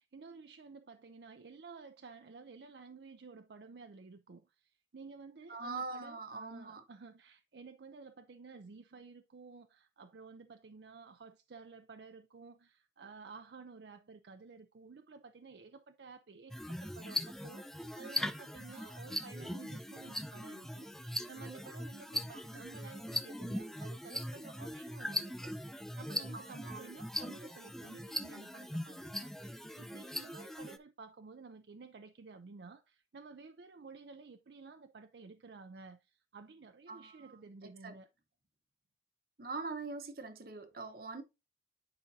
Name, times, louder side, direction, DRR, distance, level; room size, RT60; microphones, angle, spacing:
voice 1, 0.0-25.5 25.9-38.1, right 4 dB, 70° right, 0.5 m, -53 dB
voice 2, 5.5-6.8 22.1-22.2 26.3-26.9 36.9-38.0 39.4-41.2, right 3 dB, 55° right, 1.0 m, -43 dB
sound 1, 16.5-30.8, left 1 dB, ahead, 0.4 m, -40 dB
9.5 x 5.1 x 2.7 m
head